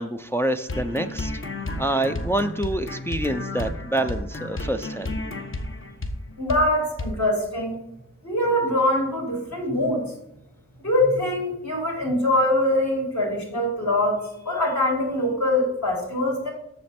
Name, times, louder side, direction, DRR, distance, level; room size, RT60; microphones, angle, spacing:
voice 1, 0.0-1.3 1.8-5.2, right 1 dB, 10° left, 7 dB, 0.4 m, -26 dB
sound 1, 0.7-6.2 6.5-6.7 7.0-7.1, left 2 dB, 40° left, 1.0 m, -32 dB
voice 2, 6.4-7.8 8.2-10.0 10.8-14.2 14.4-16.5, left 1 dB, 60° left, -2 dB, 3.1 m, -23 dB
7.6 x 6.7 x 4.2 m, 0.81 s
wide cardioid pair, 115°, 32 cm